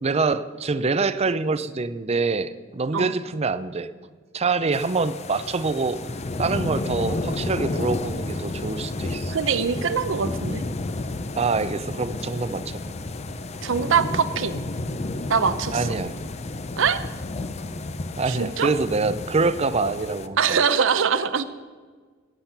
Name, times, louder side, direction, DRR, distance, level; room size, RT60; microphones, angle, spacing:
voice 1, 0.0-3.9 4.3-6.0 6.4-9.3 11.3-12.8 15.7-16.1 18.2-20.6, right 4 dB, 30° right, 14 dB, 0.5 m, -25 dB
sound 1, 4.7-20.3, left 2 dB, 35° left, 0.6 m, -31 dB
voice 2, 9.3-10.6 13.6-14.6 15.3-15.9 16.8-17.0 18.3-18.7 20.4-21.4, right 6 dB, 70° right, 13 dB, 0.7 m, -23 dB
16.0 x 8.4 x 6.0 m, 1.5 s
head